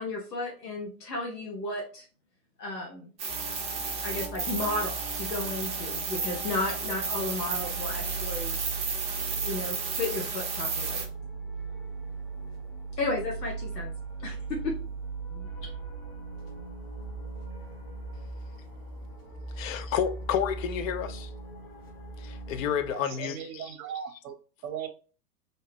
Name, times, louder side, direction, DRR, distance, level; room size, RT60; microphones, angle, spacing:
voice 1, 0.0-2.0 2.6-3.1 4.0-8.6 9.4-11.0 13.0-13.9 14.2-14.7 19.7-19.8, left 2 dB, 85° left, 0.8 m, -33 dB
sound 1, 3.2-11.0, right 5 dB, 15° right, 0.6 m, -33 dB
sound 2, 3.3-22.9, right 4 dB, 30° left, 1.0 m, -39 dB
voice 2, 19.6-21.3 22.2-23.7, left 8 dB, 55° left, 0.5 m, -30 dB
voice 3, 22.9-24.3 24.6-24.9, right 8 dB, 60° right, 0.6 m, -38 dB
2.7 x 2.2 x 3.2 m
hypercardioid pair, 105°, 48 cm